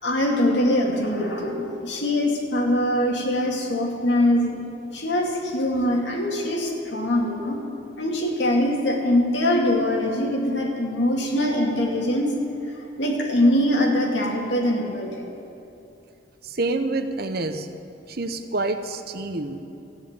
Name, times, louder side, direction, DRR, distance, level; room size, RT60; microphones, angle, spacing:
voice 1, 0.0-4.6 4.9-7.6 8.0-12.3 13.0-15.2, left 1 dB, 70° left, 0 dB, 2.4 m, -23 dB
voice 2, 16.4-17.7 18.1-19.6, right 2 dB, 55° right, 9 dB, 0.9 m, -27 dB
14.5 x 9.6 x 8.9 m, 2.9 s
head